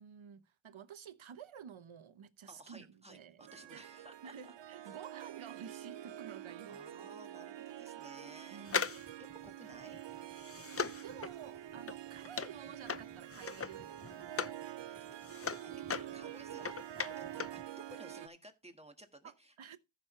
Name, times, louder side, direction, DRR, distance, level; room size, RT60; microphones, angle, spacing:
voice 1, 0.0-3.4 3.7-3.8 4.2-6.8 8.5-9.0 10.7-14.7 19.2-19.8, right 8 dB, 90° right, 0.9 m, -51 dB
voice 2, 2.5-4.5 4.8-5.0 6.7-10.0 13.6-13.8 15.0-16.8 17.2-19.8, right 1 dB, 15° right, 1.6 m, -56 dB
Harp, 3.4-18.3, right 12 dB, 70° right, 0.5 m, -47 dB
sound 1, 8.7-14.6 15.0-17.6 17.9-18.0, left 5 dB, 30° left, 0.6 m, -40 dB
14.5 x 6.2 x 3.2 m
wide cardioid pair, 90°, 47 cm